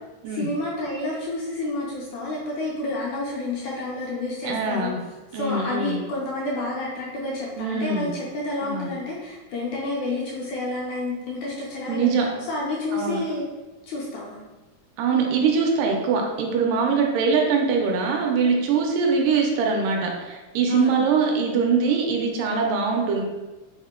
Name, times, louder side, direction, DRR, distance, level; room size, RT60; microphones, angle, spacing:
voice 1, 0.3-5.0 5.3-13.5 13.9-14.4 20.7-21.1, left 2 dB, 75° left, -4 dB, 1.8 m, -29 dB
voice 2, 4.4-5.0 5.3-6.0 7.6-8.1 8.6-8.9 11.9-12.3 12.9-13.2 15.0-23.2, right 5 dB, 80° right, 1 dB, 2.2 m, -23 dB
5.4 x 2.2 x 3.6 m, 1.2 s
omnidirectional pair, 3.8 m